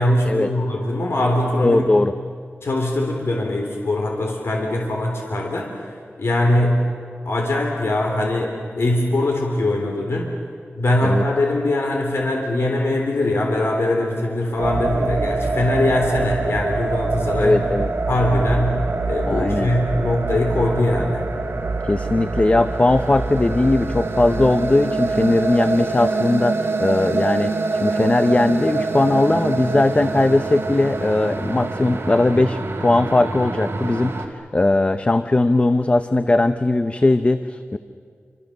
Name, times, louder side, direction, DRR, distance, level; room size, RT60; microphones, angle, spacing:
voice 1, 0.0-1.8 2.6-5.7 6.2-6.9 7.3-10.3 10.7-17.6 18.1-21.2, left 1 dB, 75° left, 1 dB, 3.6 m, -21 dB
voice 2, 1.6-2.1 11.0-11.3 17.4-17.9 19.3-19.7 21.8-27.5 27.8-37.8, left 2 dB, 30° left, 10 dB, 0.7 m, -19 dB
sound 1, 14.6-34.3, right 3 dB, 70° right, 2.6 m, -25 dB
28.5 x 26.0 x 6.8 m, 2.2 s
wide cardioid pair, 105°, 4 cm